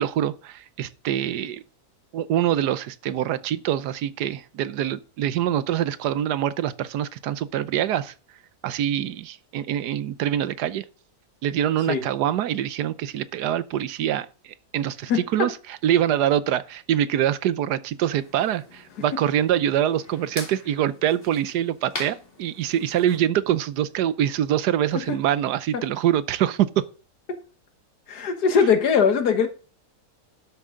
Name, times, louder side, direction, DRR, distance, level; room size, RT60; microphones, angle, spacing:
voice 1, 0.0-1.6 2.1-8.1 8.6-10.8 11.4-26.8, right 11 dB, 90° right, 1.3 m, -24 dB
voice 2, 15.1-15.5 25.7-25.8 27.3-27.4 28.1-29.5, left 6 dB, 80° left, 1.9 m, -21 dB
sound 1, 18.1-23.2, left 2 dB, 35° left, 2.5 m, -42 dB
11.5 x 8.2 x 3.7 m
omnidirectional pair, 1.7 m